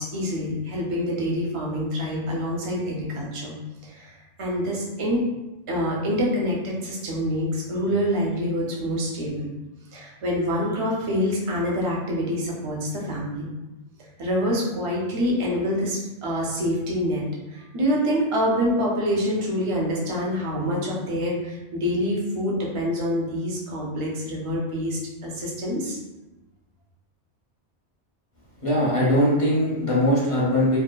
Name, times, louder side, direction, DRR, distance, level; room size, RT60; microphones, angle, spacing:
voice 1, 0.0-3.5 3.8-5.2 5.7-9.5 9.9-13.5 14.2-17.2 17.5-26.0, equal, 40° right, -4 dB, 0.5 m, -26 dB
voice 2, 28.6-30.8, equal, 40° left, -7 dB, 0.5 m, -21 dB
2.7 x 2.2 x 2.2 m, 1.0 s
omnidirectional pair, 1.2 m